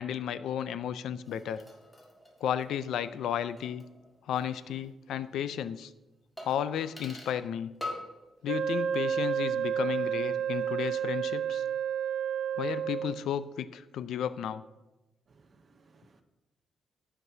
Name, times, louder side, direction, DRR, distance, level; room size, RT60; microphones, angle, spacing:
voice 1, 0.0-1.6 2.4-3.8 4.3-5.9 6.4-7.7 8.4-11.6 12.6-14.6, left 9 dB, 80° left, 0.4 m, -33 dB
sound 1, 1.2-4.6 4.8-4.9 6.4-7.5 7.8-8.2 8.5-9.1 9.3-9.4, left 2 dB, 10° left, 1.8 m, -45 dB
Wind instrument woodwind instrument, 8.5-13.2, right 8 dB, 75° right, 0.3 m, -30 dB
voice 2, 15.3-16.2, right 4 dB, 35° right, 0.7 m, -62 dB
15.0 x 5.9 x 2.8 m
cardioid pair, 150°, 0 cm